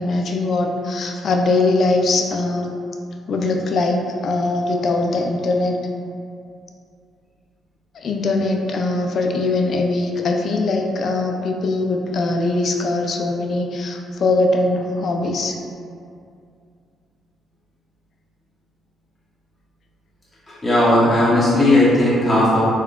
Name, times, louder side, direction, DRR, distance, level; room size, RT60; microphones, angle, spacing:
voice 1, 0.0-2.7 3.3-5.8 7.9-15.6, left 2 dB, 60° left, 2 dB, 0.3 m, -21 dB
voice 2, 20.5-22.6, left 1 dB, 15° left, -9 dB, 0.7 m, -16 dB
3.5 x 2.3 x 2.3 m, 2.4 s
cardioid pair, 90°, 0 cm